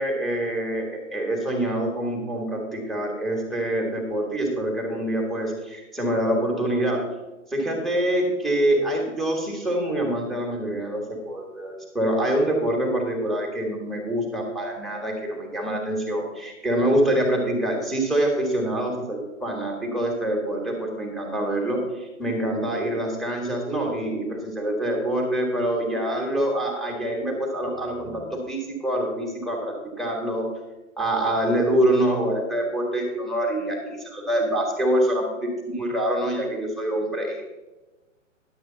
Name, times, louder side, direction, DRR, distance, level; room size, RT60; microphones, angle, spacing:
voice 1, 0.0-7.0 7.5-30.5 31.0-37.4, right 1 dB, ahead, -1 dB, 1.7 m, -25 dB
10.5 x 7.8 x 3.9 m, 1.1 s
figure-of-eight pair, 120°, 39 cm